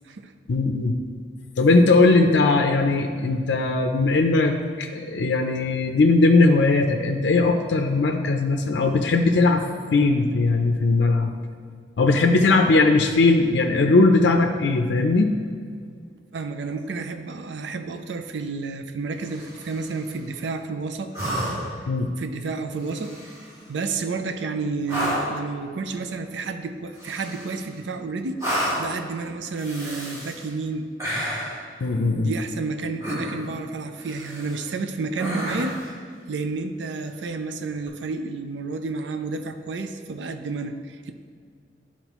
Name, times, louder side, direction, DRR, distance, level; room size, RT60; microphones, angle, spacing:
voice 1, 0.5-1.0 1.6-9.6 9.9-11.3 12.0-15.3 21.9-22.1 31.8-32.3, left 3 dB, 70° left, 3 dB, 0.5 m, -19 dB
voice 2, 16.3-21.1 21.5-21.6 22.2-23.3 23.7-28.4 28.8-30.9 32.2-35.8 36.3-41.1, right 4 dB, 75° right, 7 dB, 0.5 m, -30 dB
sound 1, 19.2-19.9 21.1-21.8 22.8-23.5 24.9-25.4 27.0-27.7 28.4-29.0 29.5-30.5 31.0-31.6 33.0-33.6 34.0-34.7 35.2-35.9 37.8-37.9, equal, 20° right, 1.8 m, -30 dB
11.0 x 4.2 x 3.0 m, 2.1 s
head